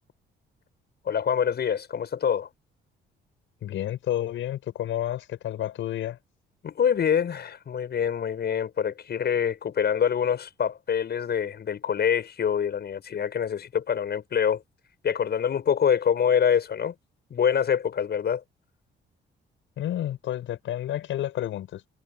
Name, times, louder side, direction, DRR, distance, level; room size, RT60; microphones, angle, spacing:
voice 1, 1.0-2.5 6.6-14.6 15.0-16.9 17.3-18.4, left 8 dB, 55° left, 7.9 m, -25 dB
voice 2, 3.6-6.2 19.8-21.9, left 12 dB, 80° left, 6.7 m, -30 dB
cardioid pair, 90°, 20 cm